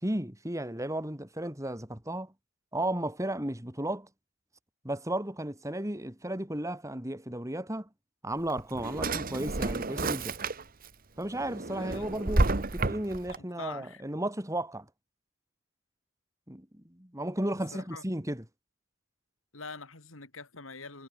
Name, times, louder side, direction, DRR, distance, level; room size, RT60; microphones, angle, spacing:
voice 1, 0.0-2.3 2.7-4.1 4.8-7.9 8.2-10.4 11.2-14.9 16.5-18.4, right 1 dB, 15° right, 3.8 m, -34 dB
Drawer open or close, 8.3-10.9 11.3-13.4, right 2 dB, 45° right, 1.3 m, -30 dB
voice 2, 11.7-12.3 13.6-14.0 17.7-18.0 19.5-21.1, left 4 dB, 75° left, 3.9 m, -44 dB
head